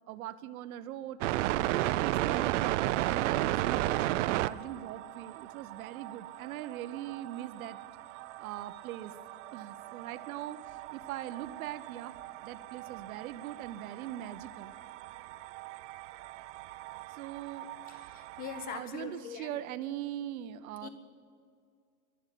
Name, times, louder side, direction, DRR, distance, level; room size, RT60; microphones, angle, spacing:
voice 1, 0.1-2.7 3.1-7.8 8.4-9.2 9.5-14.7 17.1-17.7 18.7-20.9, right 12 dB, 85° right, 13 dB, 0.8 m, -41 dB
sound 1, 1.2-18.8, right 15 dB, 60° right, 0.5 m, -35 dB
voice 2, 17.8-19.6 20.8-20.9, left 6 dB, 20° left, 8 dB, 1.1 m, -42 dB
12.0 x 11.0 x 9.9 m, 2.2 s
supercardioid pair, 165°, 41 cm